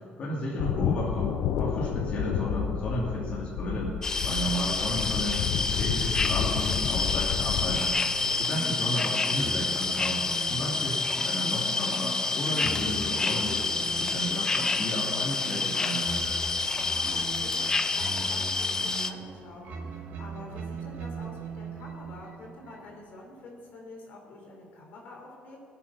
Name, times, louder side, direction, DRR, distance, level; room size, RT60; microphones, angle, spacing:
voice 1, 0.2-4.0 4.2-8.0 8.4-10.2 10.5-13.7 14.0-16.2, equal, 40° left, -5 dB, 2.6 m, -33 dB
sound 1, 0.6-7.9, left 8 dB, 85° left, 0.7 m, -30 dB
sound 2, 4.0-19.1, left 3 dB, 20° left, 0.6 m, -28 dB
sound 3, 7.7-23.2, right 4 dB, 60° right, 2.1 m, -41 dB
voice 2, 8.0-8.6 16.5-25.6, left 2 dB, 65° left, -1 dB, 3.5 m, -47 dB
20.0 x 8.0 x 6.0 m, 2.2 s
cardioid pair, 145°, 3 cm